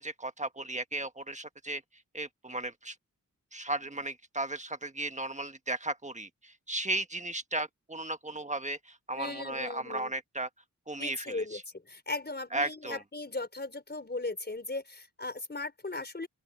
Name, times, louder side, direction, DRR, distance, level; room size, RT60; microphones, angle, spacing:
voice 1, 0.0-1.8 2.1-3.0 3.5-10.5 10.9-11.6 12.5-13.0, right 2 dB, 25° right, 1.4 m, -35 dB
voice 2, 9.2-10.1 11.0-11.6 11.9-16.3, left 2 dB, 35° left, 4.7 m, -37 dB
open air
cardioid pair, 60°, 31 cm